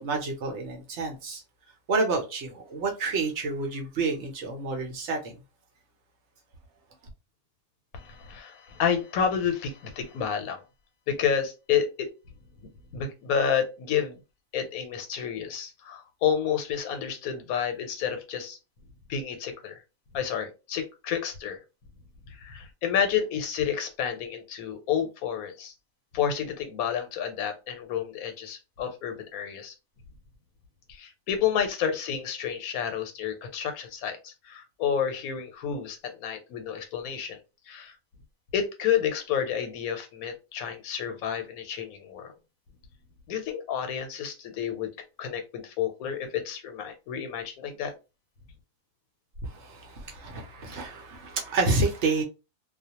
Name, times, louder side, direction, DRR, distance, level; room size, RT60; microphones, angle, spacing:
voice 1, 0.0-1.4 1.9-5.3 49.4-52.2, right 3 dB, 60° right, 0.8 m, -29 dB
voice 2, 7.9-10.6 11.1-12.1 12.9-14.2 14.5-18.6 19.1-19.8 20.1-21.6 22.3-25.7 26.1-29.7 30.9-37.4 37.7-37.9 38.5-42.3 43.3-44.9 45.2-47.9, left 8 dB, 85° left, 1.1 m, -30 dB
2.3 x 2.1 x 2.8 m
omnidirectional pair, 1.5 m